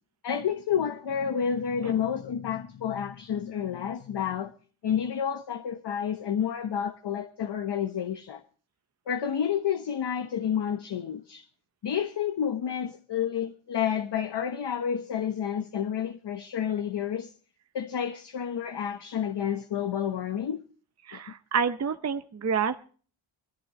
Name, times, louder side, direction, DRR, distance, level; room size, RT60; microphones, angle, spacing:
voice 1, 0.2-4.5 4.8-8.4 9.1-11.4 11.8-17.3 17.7-20.6 21.1-21.2, left 8 dB, 60° left, 1.2 m, -30 dB
voice 2, 21.1-22.8, right 6 dB, 35° right, 0.7 m, -28 dB
21.5 x 14.5 x 3.1 m
wide cardioid pair, 160°, 48 cm